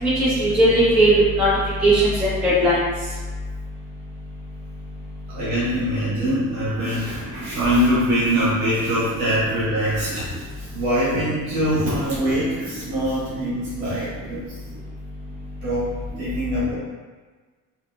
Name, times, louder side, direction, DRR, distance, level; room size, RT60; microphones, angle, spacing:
voice 1, 0.0-1.5 1.8-2.8, right 1 dB, 5° right, -11 dB, 0.4 m, -17 dB
voice 2, 5.3-14.6 15.6-16.7, equal, 55° right, -9 dB, 1.1 m, -23 dB
2.7 x 2.5 x 2.5 m, 1.4 s
cardioid pair, 170°, 33 cm